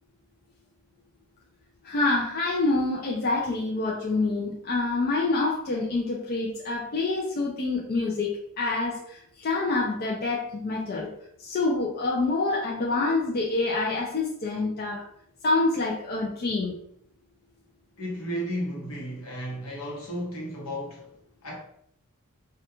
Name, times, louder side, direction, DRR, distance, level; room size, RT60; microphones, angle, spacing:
voice 1, 1.8-11.1 11.4-15.0 15.4-16.7, left 3 dB, 45° left, 0.3 m, -27 dB
voice 2, 18.0-21.1 21.4-21.6, equal, 70° left, 0.9 m, -33 dB
2.3 x 2.2 x 2.9 m
head